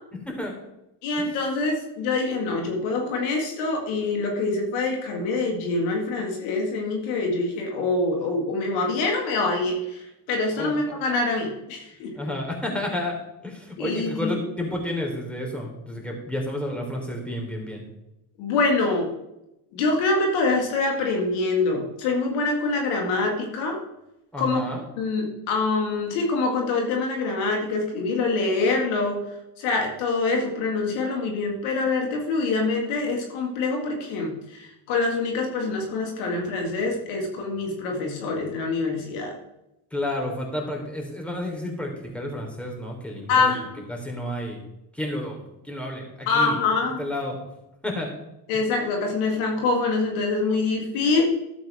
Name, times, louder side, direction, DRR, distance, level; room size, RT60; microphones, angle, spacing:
voice 1, 1.0-12.2 13.8-14.3 18.4-19.1 19.7-23.8 24.4-24.7 25.0-29.2 29.6-39.4 43.3-43.8 46.3-47.0 48.5-51.2, left 3 dB, 80° left, 1 dB, 2.1 m, -25 dB
voice 2, 12.1-13.2 13.4-17.8 24.3-24.8 39.9-43.5 43.9-44.6 44.9-46.6 47.0-47.4 47.8-48.1, left 1 dB, ahead, 0 dB, 3.4 m, -31 dB
12.0 x 7.8 x 3.5 m, 0.89 s
supercardioid pair, 65°, 48 cm